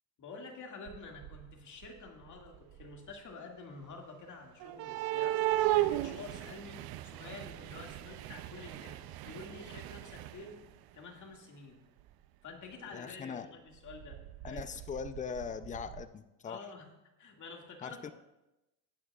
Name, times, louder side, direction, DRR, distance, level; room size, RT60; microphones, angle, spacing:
voice 1, 0.2-5.4 5.8-10.6 10.9-11.8 12.4-14.6 16.4-16.9 17.2-18.1, left 3 dB, 45° left, 1 dB, 2.2 m, -49 dB
sound 1, 0.9-1.5 1.8-3.1 4.6-10.7 12.1-12.2 12.7-12.8 13.9-16.0, right 15 dB, 60° right, 0.6 m, -36 dB
voice 2, 12.9-13.5 14.4-16.6 17.8-18.1, left 6 dB, 20° left, 12 dB, 0.5 m, -40 dB
19.0 x 8.7 x 2.4 m, 0.96 s
cardioid pair, 105°, 42 cm